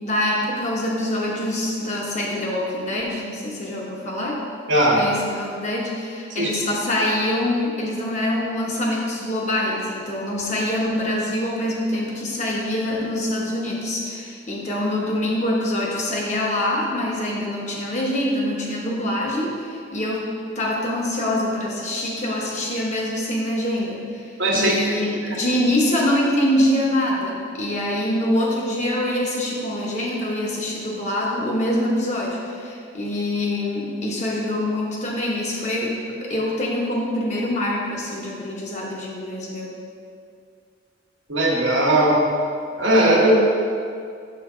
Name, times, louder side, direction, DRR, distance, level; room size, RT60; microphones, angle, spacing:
voice 1, 0.0-4.4 5.0-39.7, left 1 dB, 40° left, -3 dB, 1.0 m, -25 dB
voice 2, 4.7-5.0 6.4-6.5 24.4-25.0 25.3-25.4 41.3-42.2 42.8-43.4, right 1 dB, 80° right, -3 dB, 1.2 m, -18 dB
6.3 x 3.5 x 5.6 m, 2.3 s
head